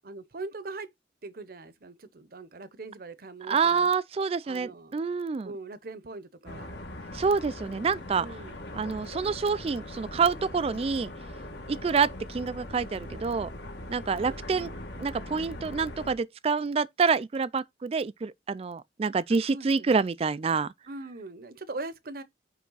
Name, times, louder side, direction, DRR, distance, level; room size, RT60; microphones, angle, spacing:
voice 1, 0.0-0.9 1.2-3.9 4.4-5.0 5.4-6.7 8.2-8.6 14.2-14.4 19.5-20.0 20.9-22.2, right 3 dB, 55° right, 0.8 m, -41 dB
voice 2, 3.5-5.5 7.1-8.3 8.7-11.1 11.7-13.5 13.9-14.7 15.0-20.7, right 5 dB, 35° right, 0.3 m, -27 dB
sound 1, 6.5-16.1, left 1 dB, 65° left, 1.7 m, -41 dB
9.3 x 3.4 x 3.9 m
head